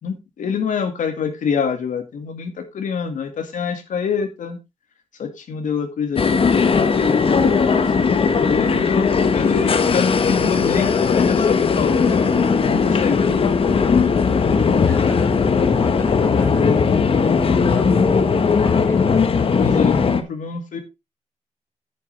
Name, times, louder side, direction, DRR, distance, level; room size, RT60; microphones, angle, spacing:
voice 1, 0.0-4.6 5.2-8.2 8.5-13.8 15.0-15.6 17.5-18.0 19.6-20.8, left 6 dB, 85° left, 6 dB, 1.9 m, -27 dB
sound 1, 6.2-20.2, left 5 dB, 45° left, 1.2 m, -18 dB
voice 2, 13.2-13.6 14.8-19.1, left 2 dB, 20° left, 5 dB, 2.6 m, -30 dB
10.0 x 8.3 x 3.3 m, 0.24 s
wide cardioid pair, 150°, 13 cm